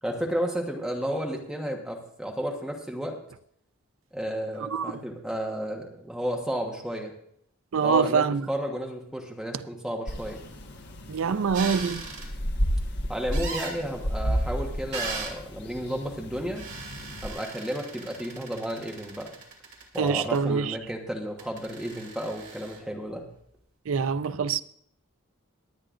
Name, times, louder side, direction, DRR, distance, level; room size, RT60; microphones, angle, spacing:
voice 1, 0.0-3.2 4.1-7.1 7.8-10.4 13.1-16.6 17.2-19.3 19.9-23.3, equal, 5° right, 1.2 m, -32 dB
voice 2, 4.6-4.9 7.7-8.4 11.1-12.0 20.0-20.8 23.9-24.6, right 5 dB, 70° right, 0.4 m, -25 dB
sound 1, 10.1-17.3, equal, 55° left, 1.2 m, -32 dB
sound 2, 11.5-12.3 13.3-13.8 14.9-15.4 16.6-20.4 21.4-22.8, right 4 dB, 55° right, 2.7 m, -38 dB
22.5 x 8.7 x 2.5 m
head